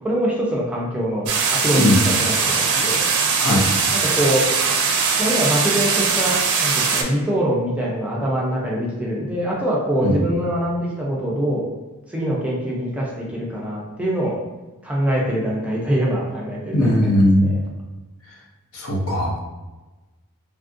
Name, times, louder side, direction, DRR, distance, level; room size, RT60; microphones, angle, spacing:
voice 1, 0.0-3.1 3.9-4.5 5.2-11.6 12.1-14.4 14.8-17.1 17.4-17.6, equal, 5° right, -4 dB, 0.5 m, -24 dB
sound 1, 1.3-7.0, right 5 dB, 70° right, 0.4 m, -20 dB
voice 2, 16.7-17.5 18.7-19.4, left 1 dB, 65° left, -2 dB, 0.7 m, -18 dB
3.4 x 2.4 x 2.5 m, 1.2 s
head